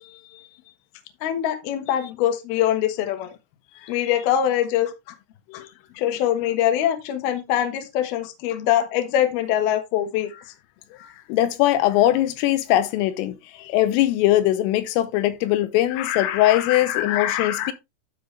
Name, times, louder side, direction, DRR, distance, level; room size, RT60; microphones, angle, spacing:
voice 1, 1.2-3.4 3.9-4.9 5.5-5.7 5.9-10.3 15.9-17.7, left 11 dB, 65° left, 2.7 m, -23 dB
voice 2, 11.0-17.7, left 14 dB, 85° left, 3.4 m, -21 dB
12.5 x 4.6 x 3.2 m
omnidirectional pair, 5.7 m